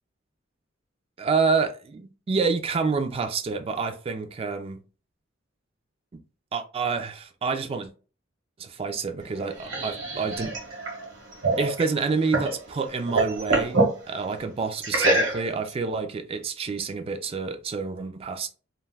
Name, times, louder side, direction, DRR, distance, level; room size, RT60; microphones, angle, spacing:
voice 1, 1.2-4.8 6.1-6.2 6.5-7.9 8.6-10.6 11.6-18.5, right 4 dB, 30° right, 0.3 m, -28 dB
sound 1, 9.2-12.6 12.9-14.0 14.8-15.7, right 2 dB, 70° right, 0.9 m, -25 dB
2.2 x 2.2 x 3.3 m
head